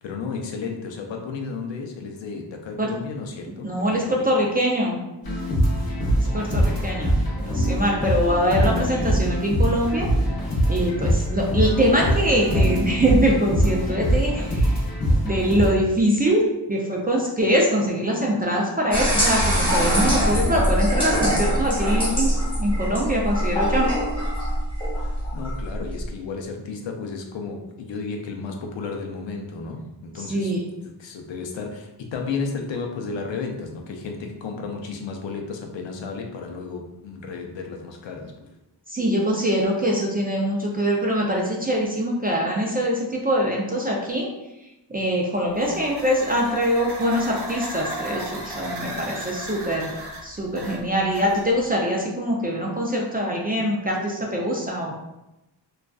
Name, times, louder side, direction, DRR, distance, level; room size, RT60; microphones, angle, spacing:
voice 1, 0.0-4.3 25.0-30.5 31.0-38.5, left 4 dB, 80° left, 3 dB, 0.5 m, -33 dB
voice 2, 3.6-5.0 6.2-10.1 10.7-14.8 15.2-22.3 22.6-23.9 30.2-30.6 38.9-44.3 44.9-49.9 50.2-54.9, equal, 20° right, -2 dB, 0.4 m, -23 dB
sound 1, 5.2-15.7, equal, 55° left, 0.9 m, -23 dB
sound 2, 18.9-26.1, equal, 10° left, 1.1 m, -23 dB
sound 3, 45.5-51.7, right 1 dB, 60° right, 0.7 m, -36 dB
2.4 x 2.3 x 2.2 m, 0.95 s
wide cardioid pair, 75°, 44 cm